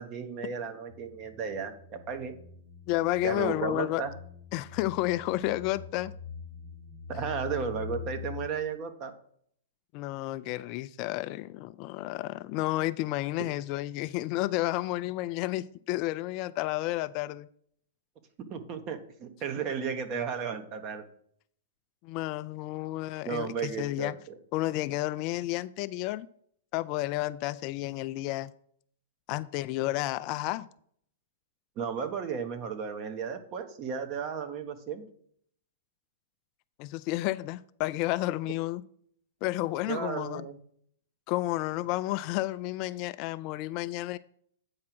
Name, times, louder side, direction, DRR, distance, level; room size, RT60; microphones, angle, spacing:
voice 1, 0.0-2.3 3.2-4.1 7.1-9.1 18.5-21.0 23.2-24.2 31.8-35.0 39.9-40.6, right 6 dB, 35° right, 8 dB, 1.2 m, -34 dB
sound 1, 0.9-8.5, left 7 dB, 85° right, 2.6 m, -44 dB
voice 2, 2.9-4.0 4.5-6.1 9.9-17.5 22.0-24.1 24.5-26.3 26.7-28.5 29.3-30.7 36.8-38.8 39.4-40.4 41.3-44.2, left 17 dB, 40° left, 14 dB, 0.3 m, -31 dB
8.6 x 4.8 x 6.0 m, 0.63 s
hypercardioid pair, 135°, 0 cm